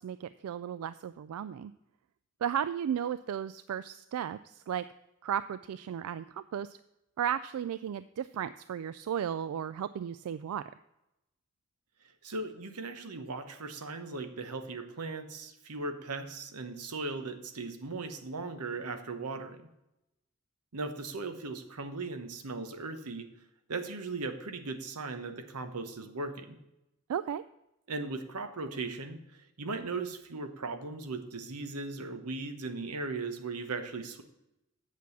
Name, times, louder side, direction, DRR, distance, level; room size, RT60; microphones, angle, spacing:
voice 1, 0.0-1.7 2.4-4.8 5.2-6.8 7.2-10.6 27.1-27.4, right 9 dB, 70° right, 14 dB, 0.3 m, -34 dB
voice 2, 12.2-19.6 20.7-23.3 23.7-26.6 27.9-34.2, right 3 dB, 90° right, 8 dB, 1.0 m, -38 dB
8.3 x 6.2 x 7.1 m, 0.90 s
head